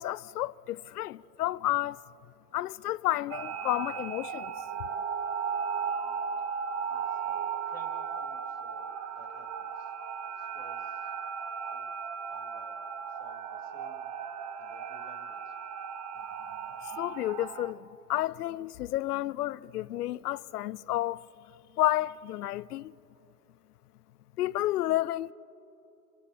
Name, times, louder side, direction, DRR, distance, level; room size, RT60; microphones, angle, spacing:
voice 1, 0.0-2.0 2.5-4.5 16.8-21.2 21.8-22.9 24.4-25.3, left 15 dB, 75° left, 0.6 m, -31 dB
sound 1, 3.3-17.7, right 6 dB, 35° right, 1.2 m, -36 dB
voice 2, 6.9-9.9 10.3-11.1 11.7-11.9 12.3-12.8 13.1-14.1 14.6-15.6, left 1 dB, 5° left, 2.3 m, -58 dB
27.0 x 23.0 x 4.2 m
hypercardioid pair, 125°, 47 cm